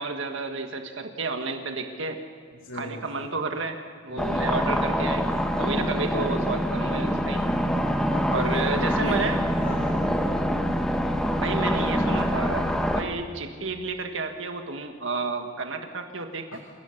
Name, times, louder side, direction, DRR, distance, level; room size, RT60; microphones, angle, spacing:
voice 1, 0.0-2.2 2.7-5.3 5.6-7.5 8.3-9.4 11.4-16.6, right 3 dB, 65° right, 5 dB, 1.7 m, -31 dB
voice 2, 2.6-3.3 4.1-4.5 8.1-9.3 9.6-10.5 16.5-16.6, left 1 dB, 75° left, 1 dB, 2.4 m, -36 dB
sound 1, 4.2-13.0, equal, 5° left, 1.3 m, -25 dB
28.0 x 17.0 x 6.7 m, 2.2 s
head